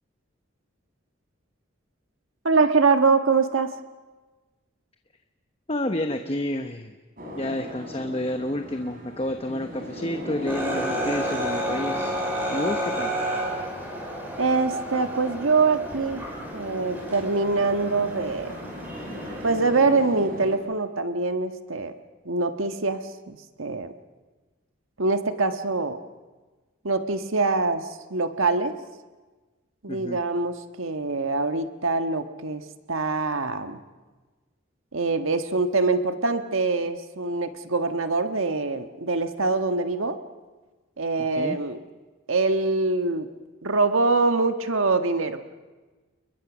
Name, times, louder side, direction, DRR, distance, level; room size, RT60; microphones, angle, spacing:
voice 1, 2.4-3.7 14.4-16.2 16.5-18.5 19.4-21.9 22.2-23.9 25.0-26.0 26.8-28.7 29.8-33.8 34.9-40.2 41.0-41.8 42.3-43.3 43.6-45.4, right 3 dB, 85° right, 8 dB, 1.5 m, -24 dB
voice 2, 5.7-6.9 7.3-12.2 12.5-13.1 29.9-30.2 41.3-41.6, left 1 dB, 30° left, 6 dB, 1.0 m, -30 dB
sound 1, 7.2-20.6, left 1 dB, 45° right, 4.7 m, -39 dB
sound 2, 10.4-19.6, right 1 dB, 10° right, 5.3 m, -31 dB
29.5 x 21.5 x 6.2 m, 1.3 s
head